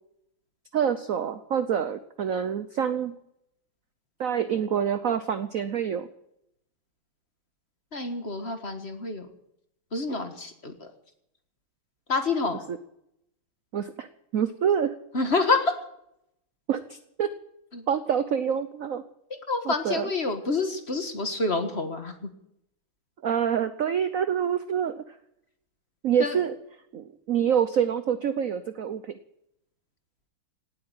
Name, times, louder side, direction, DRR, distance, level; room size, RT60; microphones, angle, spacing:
voice 1, 0.7-3.1 4.2-6.1 12.7-12.8 13.7-14.1 14.3-14.9 16.7-17.3 17.9-19.0 19.7-20.0 23.2-25.0 26.0-26.5 26.9-29.2, right 8 dB, 65° right, 12 dB, 0.8 m, -26 dB
voice 2, 7.9-9.3 9.9-10.9 12.1-12.6 15.1-15.8 17.7-17.8 19.3-22.3 26.2-26.4, left 3 dB, 30° left, 7 dB, 1.6 m, -28 dB
18.0 x 8.8 x 9.0 m, 0.77 s
omnidirectional pair, 2.3 m